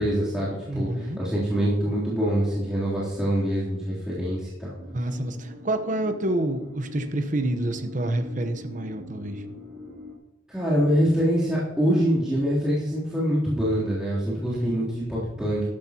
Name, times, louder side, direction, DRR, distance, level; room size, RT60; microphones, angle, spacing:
voice 1, 0.0-4.7 10.5-15.7, equal, 5° right, -11 dB, 3.3 m, -25 dB
voice 2, 0.7-1.2 4.9-9.4 14.5-14.9, right 1 dB, 45° right, 7 dB, 1.0 m, -28 dB
sound 1, 4.8-10.2, left 1 dB, 85° right, 2.4 m, -42 dB
13.0 x 12.0 x 2.9 m, 1.0 s
head